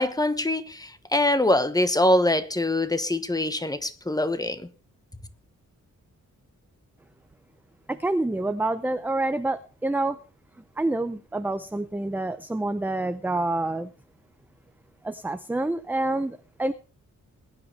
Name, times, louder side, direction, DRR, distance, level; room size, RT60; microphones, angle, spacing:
voice 1, 0.0-4.6, left 1 dB, 10° left, 1.0 m, -24 dB
voice 2, 7.9-10.2 10.8-13.9 15.0-16.7, right 2 dB, 5° right, 0.6 m, -27 dB
20.5 x 9.7 x 3.3 m
wide cardioid pair, 115°, 31 cm